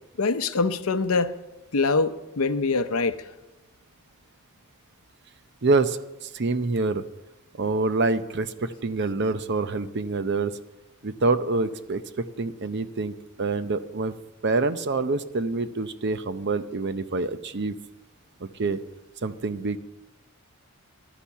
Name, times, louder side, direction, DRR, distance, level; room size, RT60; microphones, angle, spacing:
voice 1, 0.2-1.3 1.7-3.3, left 3 dB, 70° left, 12 dB, 0.7 m, -24 dB
voice 2, 5.6-7.0 7.5-10.6 11.0-14.1 14.4-17.8 18.4-18.8 19.2-19.8, right 3 dB, 50° right, 12 dB, 0.6 m, -26 dB
12.0 x 10.0 x 7.2 m, 1.1 s
head